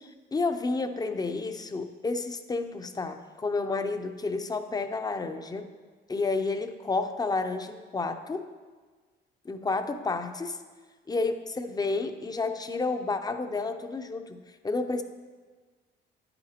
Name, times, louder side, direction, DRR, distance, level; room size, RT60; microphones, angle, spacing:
voice 1, 0.0-5.7 6.1-8.5 9.4-10.6 11.1-15.0, left 3 dB, 20° left, 8 dB, 0.5 m, -31 dB
9.5 x 7.8 x 2.9 m, 1.4 s
cardioid pair, 90°, 20 cm